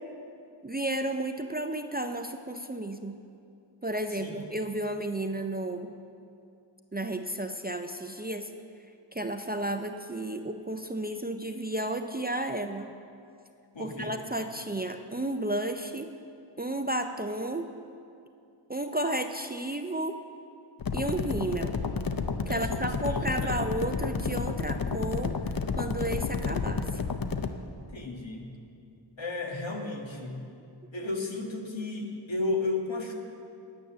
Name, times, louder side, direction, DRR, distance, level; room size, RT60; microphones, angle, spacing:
voice 1, 0.6-3.2 3.8-5.9 6.9-8.5 9.1-12.9 13.8-16.1 16.6-17.7 18.7-20.2 20.9-21.7 22.5-25.3 25.8-26.9, right 1 dB, 20° right, 6 dB, 0.4 m, -32 dB
voice 2, 4.1-4.5 13.7-14.2 22.5-23.6 27.9-28.5 29.2-30.5 30.9-33.1, left 2 dB, 65° left, 1 dB, 1.6 m, -34 dB
sound 1, 20.8-27.5, left 5 dB, 45° left, 0.7 m, -31 dB
9.8 x 9.2 x 6.8 m, 2.5 s
wide cardioid pair, 60°, 48 cm